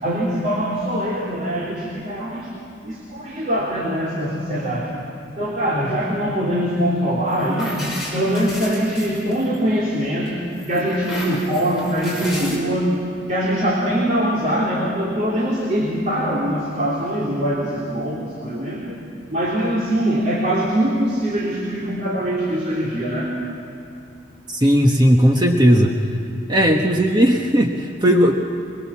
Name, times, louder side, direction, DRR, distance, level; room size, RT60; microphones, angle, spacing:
voice 1, 0.0-2.5 2.8-4.9 5.3-10.4 10.7-12.9 13.3-19.0 19.3-23.3, equal, 40° right, -5 dB, 3.5 m, -22 dB
sound 1, 7.3-9.8 10.2-12.6, equal, ahead, 5.8 m, -33 dB
voice 2, 24.5-25.9 26.5-28.3, equal, 25° right, 1 dB, 1.2 m, -16 dB
23.0 x 22.5 x 7.3 m, 2.7 s
head